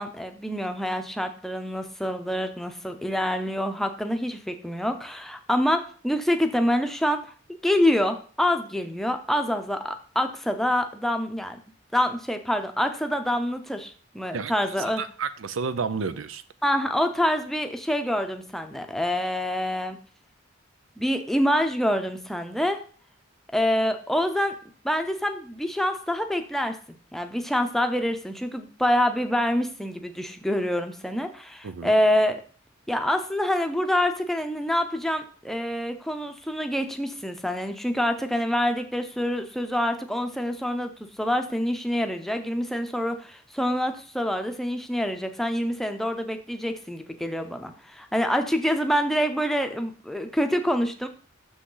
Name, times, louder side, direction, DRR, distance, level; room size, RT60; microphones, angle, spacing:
voice 1, 0.0-7.2 7.6-11.6 11.9-15.0 16.6-20.0 21.0-22.8 23.5-24.6 24.8-26.8 27.1-32.4 32.9-51.1, equal, ahead, 6 dB, 0.6 m, -26 dB
voice 2, 15.0-16.4 31.6-31.9, right 5 dB, 85° right, 12 dB, 0.6 m, -30 dB
6.4 x 6.2 x 3.9 m, 0.42 s
head